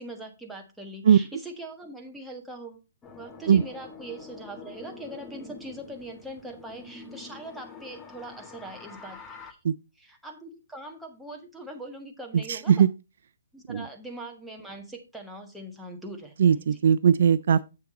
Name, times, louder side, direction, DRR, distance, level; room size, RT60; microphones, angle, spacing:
voice 1, 0.0-2.8 3.2-9.2 10.0-12.9 13.5-16.3 16.7-16.8, right 1 dB, ahead, 1.4 m, -41 dB
sound 1, 3.0-9.5, left 4 dB, 15° left, 1.2 m, -46 dB
voice 2, 12.5-12.9 13.7-13.9 16.4-17.6, right 8 dB, 55° right, 0.4 m, -19 dB
7.8 x 6.7 x 4.1 m
figure-of-eight pair, 130°, 0 cm